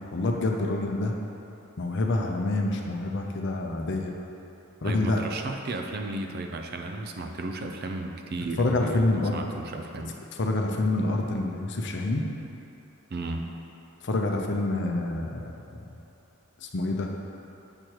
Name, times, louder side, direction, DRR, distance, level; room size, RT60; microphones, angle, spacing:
voice 1, 0.1-1.2 1.8-4.1 4.8-5.2 8.6-9.4 10.4-12.3 14.0-15.9 16.6-17.1, left 2 dB, 55° left, 1 dB, 0.6 m, -27 dB
voice 2, 4.8-10.1 13.1-13.5, right 2 dB, 45° right, 4 dB, 0.4 m, -34 dB
7.7 x 6.4 x 3.0 m, 2.8 s
head